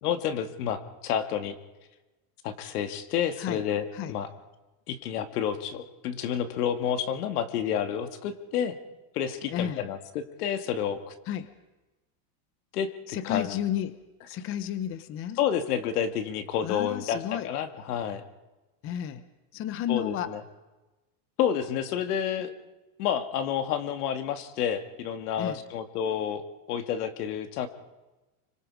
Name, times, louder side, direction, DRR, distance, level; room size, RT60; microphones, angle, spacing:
voice 1, 0.0-1.6 2.4-4.3 4.9-8.7 9.1-11.1 12.7-13.6 15.4-18.2 19.9-20.4 21.4-22.5 23.0-27.7, left 9 dB, 75° left, 8 dB, 2.4 m, -30 dB
voice 2, 9.5-9.9 11.3-11.5 13.1-15.4 16.6-17.5 18.8-19.2 19.5-20.4 25.4-25.6, left 10 dB, 30° left, 13 dB, 0.9 m, -32 dB
26.5 x 24.5 x 4.9 m, 1.1 s
supercardioid pair, 155°, 46 cm